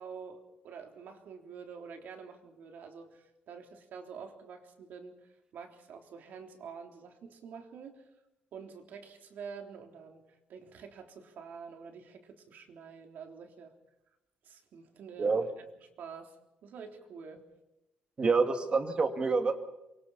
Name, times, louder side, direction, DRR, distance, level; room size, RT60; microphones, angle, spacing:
voice 1, 0.0-8.0 8.5-10.2 10.5-13.7 14.4-15.7 16.0-16.4 16.6-17.5, right 6 dB, 70° right, 3 dB, 3.6 m, -47 dB
voice 2, 18.2-19.6, right 4 dB, 30° right, 6 dB, 2.5 m, -27 dB
28.5 x 23.5 x 4.3 m, 0.91 s
cardioid pair, 125°, 3 cm